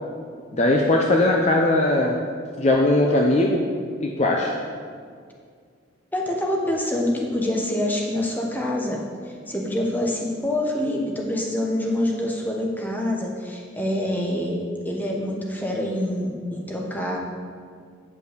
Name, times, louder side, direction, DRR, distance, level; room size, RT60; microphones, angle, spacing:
voice 1, 0.5-2.1 2.6-3.6 4.0-4.5, left 2 dB, 35° left, 0 dB, 0.6 m, -19 dB
voice 2, 6.1-14.6 14.8-17.2, left 1 dB, 10° left, -1 dB, 1.0 m, -26 dB
8.5 x 5.3 x 6.5 m, 2.1 s
head